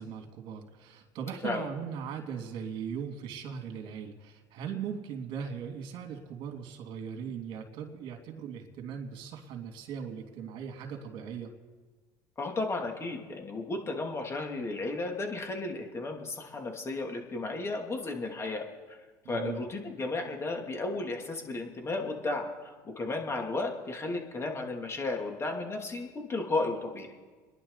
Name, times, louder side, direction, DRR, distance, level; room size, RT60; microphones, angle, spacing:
voice 1, 0.0-11.5 19.2-19.6, right 7 dB, 60° right, 4 dB, 3.0 m, -39 dB
voice 2, 12.4-19.0 19.3-27.1, left 2 dB, 30° left, 2 dB, 2.9 m, -34 dB
29.0 x 11.0 x 4.1 m, 1.4 s
supercardioid pair, 90°, 10 cm